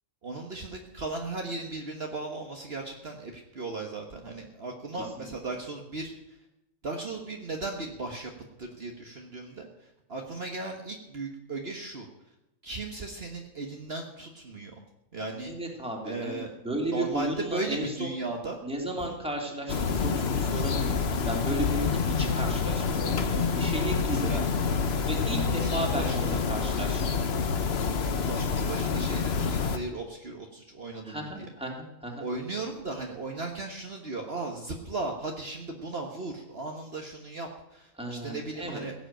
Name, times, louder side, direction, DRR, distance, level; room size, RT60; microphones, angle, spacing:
voice 1, 0.2-6.1 6.8-8.3 8.6-12.1 12.6-14.7 15.1-15.5 16.0-16.5 16.8-18.6 18.9-19.1 24.1-24.4 25.4-26.6 28.2-31.5 32.2-38.9, right 3 dB, 50° right, 2 dB, 1.7 m, -36 dB
voice 2, 15.5-18.1 18.6-24.4 25.1-27.0 31.0-32.2 38.0-38.8, right 1 dB, 5° right, 0 dB, 3.1 m, -34 dB
sound 1, 19.7-29.8, left 5 dB, 55° left, 1.2 m, -27 dB
16.5 x 8.1 x 8.9 m, 0.90 s
omnidirectional pair, 1.4 m